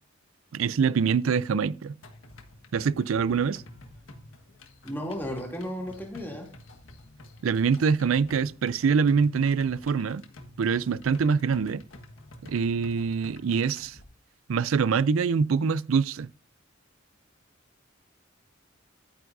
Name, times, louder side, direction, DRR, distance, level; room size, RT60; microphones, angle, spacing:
voice 1, 0.5-2.0 2.7-3.6 7.4-10.2 10.6-11.8 12.4-14.0 14.5-16.3, right 6 dB, 85° right, 0.4 m, -24 dB
sound 1, 2.0-14.0, left 1 dB, 85° left, 1.5 m, -49 dB
voice 2, 4.8-6.5, equal, 10° left, 2.7 m, -34 dB
11.5 x 9.3 x 2.6 m
head